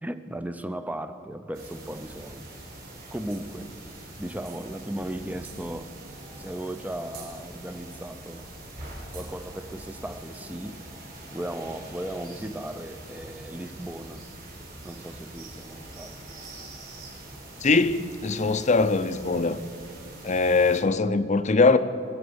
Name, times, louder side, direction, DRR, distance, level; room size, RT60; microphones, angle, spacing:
voice 1, 0.0-2.5 3.1-3.8 4.2-5.9 6.4-8.5 9.1-10.9 11.3-14.3 14.8-16.2, right 1 dB, 10° right, 0.6 m, -36 dB
sound 1, 1.5-20.8, right 1 dB, 50° right, 3.9 m, -43 dB
voice 2, 17.6-19.6 20.2-21.8, left 3 dB, 35° left, 0.6 m, -22 dB
23.5 x 7.8 x 7.0 m
head